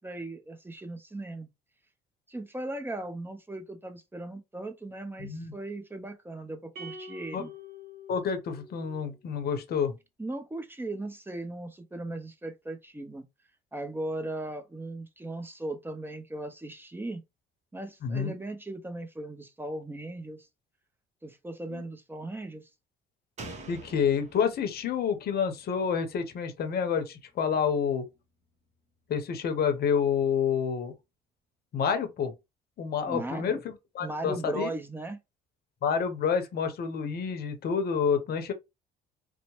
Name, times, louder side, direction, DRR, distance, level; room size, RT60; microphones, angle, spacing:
voice 1, 0.0-1.5 2.3-7.5 10.2-13.2 13.7-17.2 17.7-20.5 21.2-22.7 33.1-33.6 34.0-35.2, right 2 dB, 10° right, 0.6 m, -38 dB
voice 2, 5.2-5.5 7.3-7.4 8.1-9.9 18.0-18.4 23.7-28.0 29.1-30.9 31.7-32.3 32.8-34.7 35.8-38.5, left 7 dB, 55° left, 0.7 m, -28 dB
sound 1, 6.7-9.2, left 1 dB, 55° right, 1.1 m, -45 dB
Slam, 23.4-26.9 27.2-27.3, right 2 dB, 35° right, 0.9 m, -47 dB
2.8 x 2.1 x 3.0 m
supercardioid pair, 80°, 19 cm